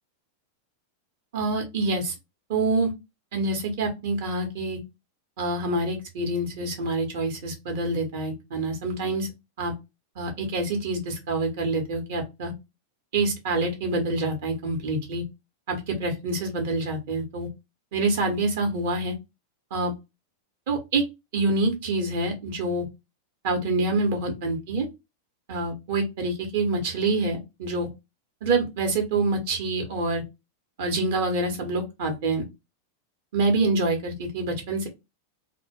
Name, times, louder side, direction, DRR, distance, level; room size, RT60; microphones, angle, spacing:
voice 1, 1.3-2.1 2.5-2.9 3.3-4.8 5.4-9.3 9.6-9.7 10.2-12.5 13.1-15.2 15.7-17.5 17.9-19.1 19.7-19.9 20.7-21.0 21.3-22.8 23.4-24.9 25.5-27.9 28.4-30.2 30.8-32.4 33.3-34.9, right 2 dB, 55° right, 3 dB, 0.7 m, -26 dB
2.1 x 2.0 x 3.3 m, 0.24 s
figure-of-eight pair, 90°, 0 cm